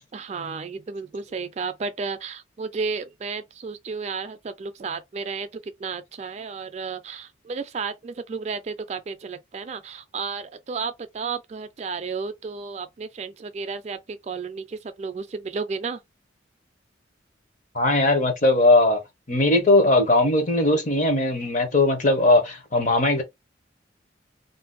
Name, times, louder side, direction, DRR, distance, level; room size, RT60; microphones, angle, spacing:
voice 1, 0.1-5.5 5.8-16.0, right 5 dB, 35° right, 0.3 m, -32 dB
voice 2, 17.7-19.0 19.3-23.2, left 2 dB, 40° left, 0.7 m, -19 dB
2.6 x 2.1 x 3.7 m
head